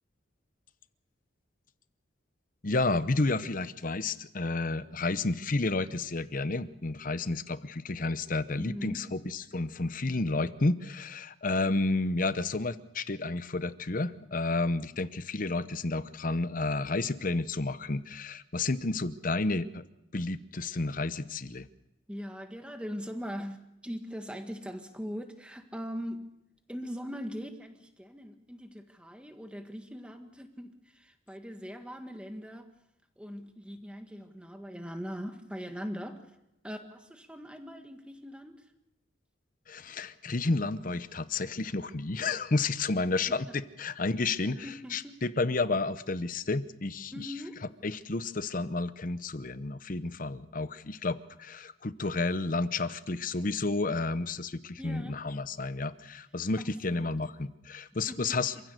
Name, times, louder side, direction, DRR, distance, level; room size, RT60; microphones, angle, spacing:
voice 1, 2.6-19.8 20.1-21.7 39.7-58.6, left 3 dB, 45° left, 14 dB, 0.8 m, -31 dB
voice 2, 8.5-9.1 22.1-26.3 26.7-32.7 33.2-36.3 36.6-38.6 43.3-43.6 44.6-45.2 47.1-47.6 54.8-55.2 56.9-57.2 58.1-58.4, equal, 5° right, 6 dB, 1.7 m, -41 dB
27.0 x 16.0 x 6.7 m, 0.88 s
head